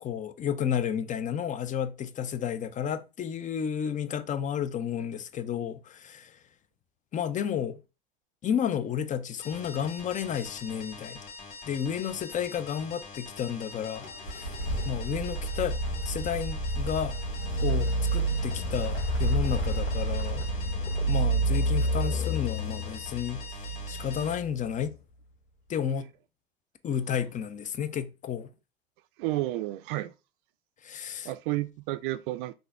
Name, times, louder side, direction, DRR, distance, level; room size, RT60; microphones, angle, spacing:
voice 1, 0.0-6.3 7.1-7.8 8.4-11.2 11.6-14.6 14.8-15.8 16.0-17.2 17.6-20.4 21.1-23.4 23.9-24.9 25.7-26.1 26.8-28.5 30.8-31.3, left 8 dB, 25° left, 0.5 m, -32 dB
sound 1, 9.4-24.3, left 4 dB, 45° left, 2.4 m, -44 dB
sound 2, 14.0-24.8, right 2 dB, 90° left, 1.1 m, -29 dB
voice 2, 29.2-30.1 31.2-32.5, right 17 dB, 60° right, 0.5 m, -31 dB
5.7 x 2.7 x 3.4 m
hypercardioid pair, 75°, 30 cm